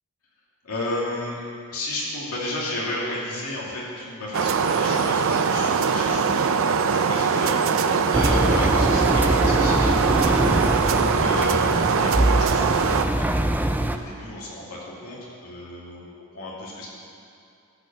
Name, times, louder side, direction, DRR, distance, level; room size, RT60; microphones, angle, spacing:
voice 1, 0.6-1.4 1.7-16.1 16.3-16.9, left 1 dB, 80° left, -5 dB, 2.6 m, -33 dB
sound 1, 4.3-13.0, right 5 dB, 65° right, 0.5 m, -22 dB
Engine, 8.1-14.0, right 1 dB, 10° right, 0.3 m, -23 dB
12.5 x 5.3 x 7.3 m, 2.5 s
head